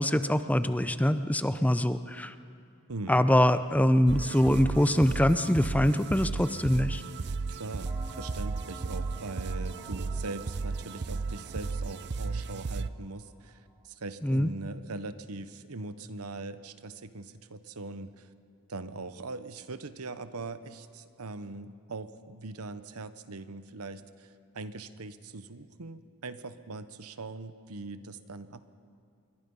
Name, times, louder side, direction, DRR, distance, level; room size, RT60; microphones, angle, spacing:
voice 1, 0.0-2.3 3.1-7.0 14.2-14.5, left 1 dB, 5° left, 11 dB, 0.6 m, -24 dB
voice 2, 2.9-3.3 7.5-18.3 18.7-28.6, right 3 dB, 90° right, 12 dB, 1.0 m, -41 dB
sound 1, 4.1-12.9, right 4 dB, 50° right, 0.6 m, -34 dB
sound 2, 7.8-13.1, right 1 dB, 10° right, 1.8 m, -47 dB
27.5 x 22.5 x 5.5 m, 2.4 s
head